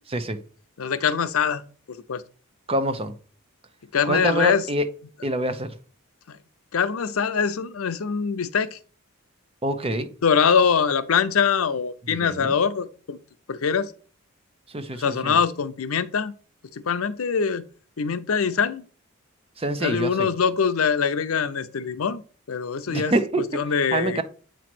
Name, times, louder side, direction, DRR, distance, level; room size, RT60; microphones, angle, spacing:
voice 1, 0.8-1.6 1.9-2.2 3.9-4.6 6.3-6.4 6.7-8.8 10.2-13.2 13.5-13.9 15.0-16.3 16.7-17.6 18.0-18.8 19.8-22.2 22.5-23.1 23.5-24.2, left 6 dB, 80° left, 0.6 m, -23 dB
voice 2, 2.7-3.1 4.1-4.9 5.2-5.7 9.6-10.1 12.1-12.5 14.7-15.4 19.6-20.3 22.9-23.6 23.9-24.2, right 1 dB, 25° right, 0.7 m, -26 dB
8.2 x 3.1 x 6.0 m
head